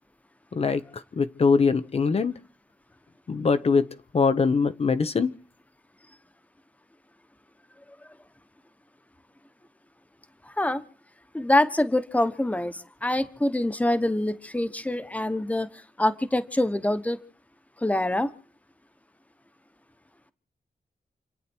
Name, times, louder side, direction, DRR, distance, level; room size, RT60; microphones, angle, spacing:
voice 1, 0.5-2.3 3.3-3.9 4.1-5.3, left 5 dB, 45° left, 1.0 m, -22 dB
voice 2, 10.4-10.8 11.3-17.2 17.8-18.3, left 1 dB, 10° left, 1.3 m, -25 dB
29.5 x 9.9 x 4.5 m
wide cardioid pair, 140°, 15 cm